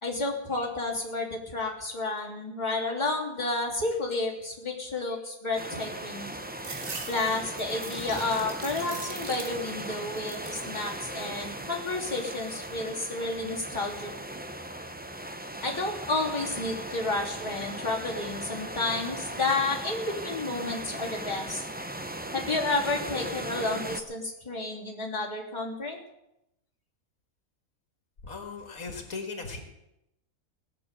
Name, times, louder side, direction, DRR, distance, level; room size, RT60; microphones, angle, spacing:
voice 1, 0.0-6.3 7.1-14.1 15.6-21.6 22.3-26.0, left 2 dB, 20° left, -4 dB, 3.1 m, -31 dB
sound 1, 5.6-24.0, right 1 dB, 10° right, 0.6 m, -38 dB
sound 2, 6.6-9.9 10.2-10.8 11.2-11.9, right 4 dB, 55° right, 1.8 m, -42 dB
voice 2, 28.2-29.6, left 4 dB, 80° left, 3 dB, 2.4 m, -38 dB
17.5 x 7.0 x 8.3 m, 0.86 s
omnidirectional pair, 1.5 m